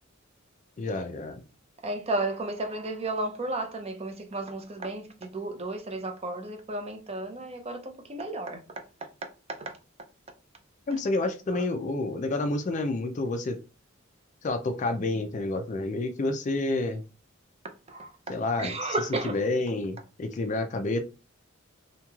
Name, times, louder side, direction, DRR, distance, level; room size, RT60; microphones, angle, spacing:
voice 1, 0.8-1.4 10.9-13.6 14.4-17.0 18.3-19.0 19.2-21.0, left 2 dB, 35° left, 0.4 m, -29 dB
voice 2, 1.8-8.6 9.6-9.7 11.5-11.6 17.9-18.1 18.6-19.4, right 2 dB, 30° right, 0.5 m, -33 dB
3.0 x 2.8 x 2.3 m
head